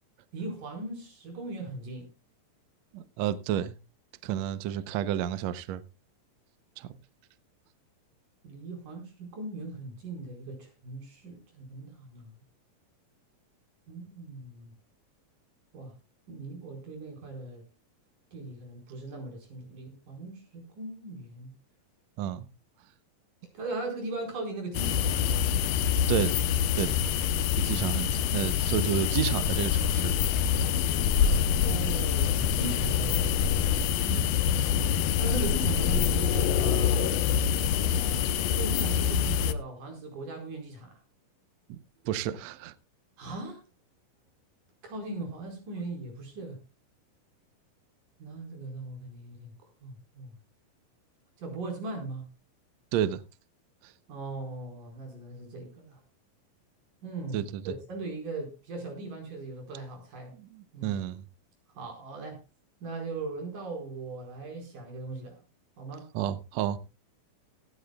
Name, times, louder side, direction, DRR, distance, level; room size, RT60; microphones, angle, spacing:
voice 1, 0.3-2.1 8.4-12.4 13.9-14.7 15.7-15.9 16.3-17.6 18.3-21.6 23.5-25.4 31.6-33.7 35.2-37.2 38.6-41.0 43.2-43.6 44.8-46.6 48.2-49.5 49.8-50.4 51.4-52.3 54.1-56.0 57.0-60.3 60.7-61.0 61.8-62.4 62.8-65.4 65.8-66.1, right 2 dB, 65° right, 2 dB, 6.1 m, -39 dB
voice 2, 2.9-3.8 4.2-5.8 6.8-6.9 22.2-22.5 26.1-26.3 26.8-27.0 27.6-30.1 30.5-30.6 34.1-34.3 41.7-41.8 42.0-42.7 52.9-53.2 57.3-57.7 60.4-61.2 66.1-66.8, right 11 dB, 80° right, 14 dB, 1.5 m, -31 dB
sound 1, 24.7-39.5, left 8 dB, 85° left, 2.5 m, -26 dB
17.0 x 14.5 x 2.3 m, 0.29 s
omnidirectional pair, 4.1 m